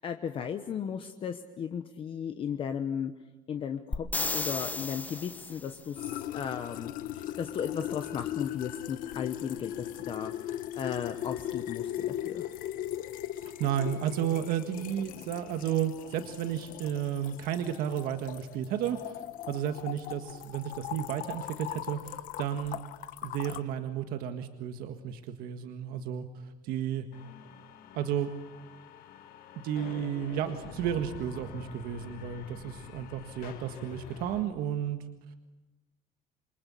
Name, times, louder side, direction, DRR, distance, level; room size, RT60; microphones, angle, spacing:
voice 1, 0.0-3.1 3.5-4.1 4.3-10.3 10.8-12.4, left 8 dB, 35° left, 7 dB, 1.1 m, -35 dB
sound 1, 3.9-5.8 9.6-9.7, left 3 dB, 10° left, 1.0 m, -33 dB
sound 2, 6.0-23.6, left 12 dB, 70° left, 1.1 m, -39 dB
voice 2, 13.4-19.2 19.5-22.8 23.2-27.1 27.9-28.3 29.6-35.0, right 9 dB, 90° right, 7 dB, 1.7 m, -33 dB
sound 3, 27.1-34.4, left 7 dB, 90° left, 3.0 m, -47 dB
28.0 x 24.0 x 8.5 m, 1.1 s
cardioid pair, 170°, 15 cm